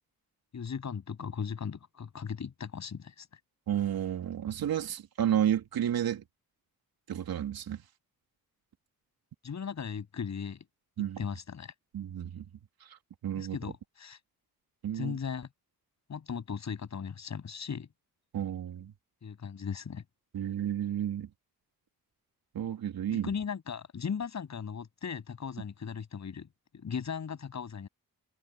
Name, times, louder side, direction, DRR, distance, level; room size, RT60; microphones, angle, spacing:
voice 1, 0.5-3.4 9.4-10.6 11.0-11.7 13.4-14.2 14.9-15.5 16.1-17.9 19.2-20.0 23.1-26.5 26.7-27.9, left 6 dB, 50° left, 7.9 m, -37 dB
voice 2, 3.7-6.2 7.1-7.8 11.0-11.2 11.9-12.5 13.2-13.6 14.8-15.2 18.3-18.9 20.3-21.3 22.5-23.3, right 10 dB, 85° right, 3.2 m, -31 dB
wide cardioid pair, 135°, 35 cm